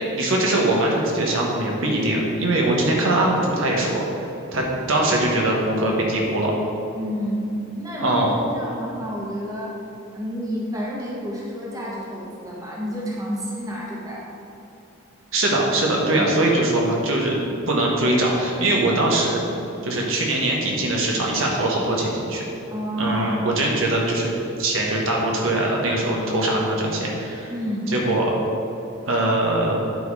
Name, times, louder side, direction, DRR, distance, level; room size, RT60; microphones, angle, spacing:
voice 1, 0.1-4.0 4.5-6.5 8.0-8.3 15.3-17.4 17.7-19.4 19.8-22.4 23.0-24.3 24.6-27.5 27.9-28.4 29.1-29.7, right 1 dB, 65° right, -2 dB, 1.3 m, -21 dB
voice 2, 6.9-8.2 8.5-9.7 10.1-14.3 16.2-16.3 22.7-23.4 27.5-27.9, equal, 15° right, -5 dB, 1.3 m, -29 dB
10.5 x 4.4 x 4.8 m, 2.9 s
head